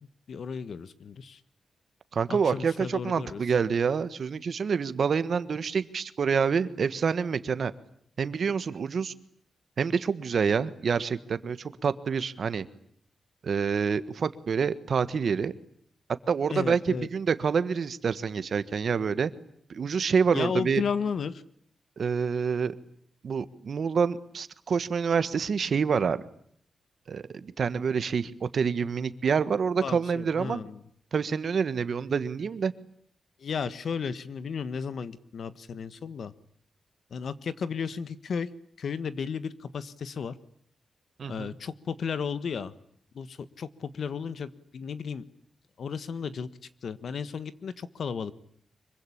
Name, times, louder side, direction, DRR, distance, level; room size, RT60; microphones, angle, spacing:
voice 1, 0.3-1.4 2.3-3.4 16.5-17.1 20.3-21.4 29.8-30.8 33.4-36.3 37.1-38.5 38.8-40.3 41.3-42.7 43.1-45.2 45.8-46.5 46.8-48.3, left 6 dB, 60° left, 14 dB, 1.5 m, -34 dB
voice 2, 2.1-7.7 8.2-9.1 9.8-12.7 13.4-15.5 16.3-19.3 19.7-20.8 22.0-22.8 23.2-26.2 27.1-30.6 31.1-32.7 41.2-41.5, right 6 dB, 50° right, 14 dB, 1.4 m, -27 dB
25.0 x 23.5 x 10.0 m, 0.65 s
wide cardioid pair, 160°, 0 cm